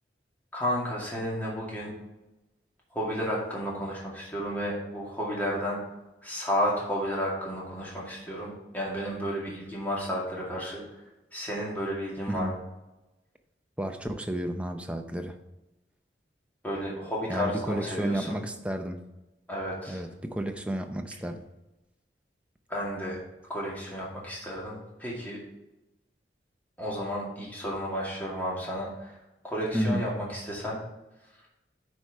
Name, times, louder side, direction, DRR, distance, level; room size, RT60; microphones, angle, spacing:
voice 1, 0.5-1.9 2.9-5.8 6.2-10.8 11.3-12.6 16.6-18.4 19.5-20.0 22.7-23.2 23.5-25.4 26.8-29.1 29.4-30.8, equal, 10° left, -5 dB, 2.1 m, -32 dB
voice 2, 13.8-15.4 17.3-19.0 19.9-21.5 29.7-30.0, right 1 dB, 5° right, 5 dB, 0.6 m, -31 dB
9.7 x 4.7 x 4.7 m, 1.0 s
head